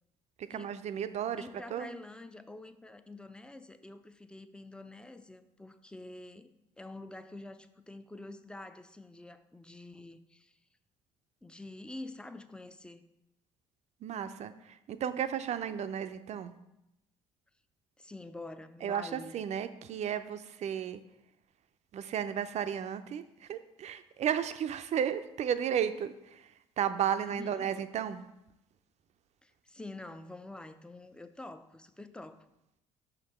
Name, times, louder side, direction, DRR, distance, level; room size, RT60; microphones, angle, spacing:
voice 1, 0.4-1.9 14.0-16.5 18.8-21.0 21.9-26.5 26.8-28.2, right 9 dB, 50° right, 11 dB, 0.5 m, -34 dB
voice 2, 1.4-6.5 6.8-10.6 11.4-13.0 18.0-19.3 27.1-27.7 29.4-32.5, left 2 dB, 5° left, 10 dB, 0.5 m, -47 dB
5.7 x 5.1 x 4.3 m, 0.88 s
hypercardioid pair, 55°, 15 cm